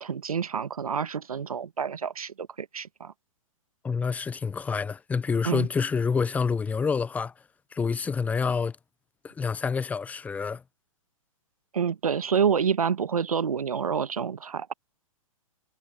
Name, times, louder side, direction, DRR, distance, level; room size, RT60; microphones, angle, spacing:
voice 1, 0.0-3.1 5.4-5.7 11.7-14.7, right 7 dB, 85° right, 1.4 m, -28 dB
voice 2, 3.8-7.3 7.7-8.8 9.2-10.6, left 5 dB, 10° left, 0.4 m, -27 dB
hypercardioid pair, 125°, 18 cm